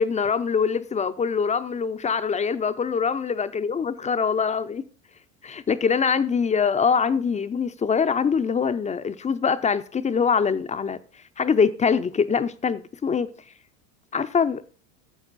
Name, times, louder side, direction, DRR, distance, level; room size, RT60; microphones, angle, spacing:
voice 1, 0.0-4.8 5.4-11.0 11.4-13.3 14.1-14.6, left 6 dB, 15° left, 0.4 m, -23 dB
11.0 x 7.2 x 4.0 m
hypercardioid pair, 90°, 48 cm